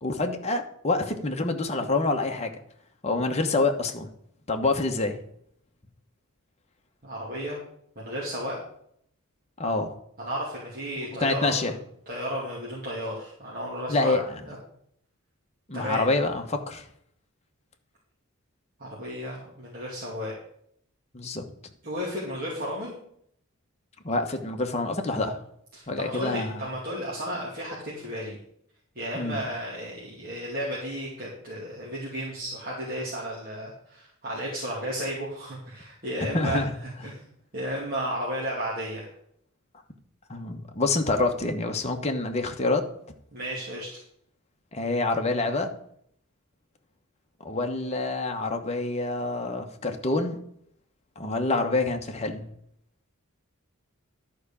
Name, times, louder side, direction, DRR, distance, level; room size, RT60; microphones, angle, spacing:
voice 1, 0.0-2.5 3.0-4.1 4.5-5.2 9.6-10.0 11.2-11.7 13.9-14.4 15.7-16.8 21.1-21.4 24.0-25.4 25.9-26.6 29.1-29.4 36.3-36.7 40.3-42.8 44.7-45.7 47.4-50.4 51.2-52.4, left 3 dB, 30° left, 4 dB, 1.1 m, -27 dB
voice 2, 7.0-7.6 8.0-8.6 10.2-11.7 12.1-14.6 15.7-16.0 18.8-20.4 21.8-23.0 25.7-28.4 28.9-37.3 37.5-39.1 43.3-44.0, equal, 40° right, -6 dB, 2.4 m, -33 dB
11.0 x 4.9 x 6.9 m, 0.69 s
head